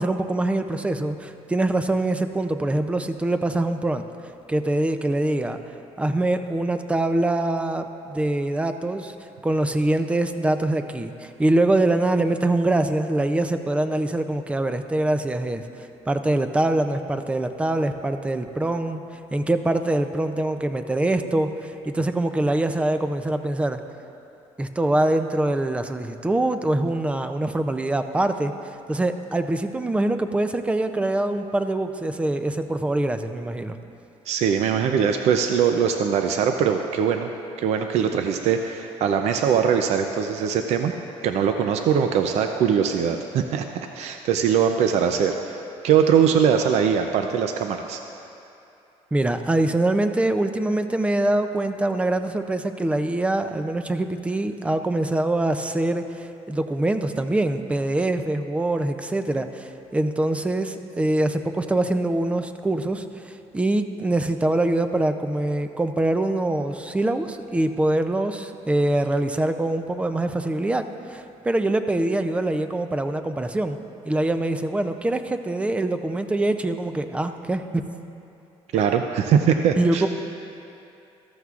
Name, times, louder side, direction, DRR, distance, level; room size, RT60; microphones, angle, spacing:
voice 1, 0.0-4.0 4.5-5.6 6.0-23.8 24.6-33.8 49.1-73.8 74.0-77.8 79.8-80.1, right 2 dB, 10° right, 8 dB, 0.4 m, -24 dB
voice 2, 34.3-37.3 37.6-40.9 41.2-48.0 78.7-80.0, right 7 dB, 70° right, 5 dB, 0.5 m, -21 dB
14.0 x 14.0 x 2.5 m, 2.7 s
cardioid pair, 140°, 12 cm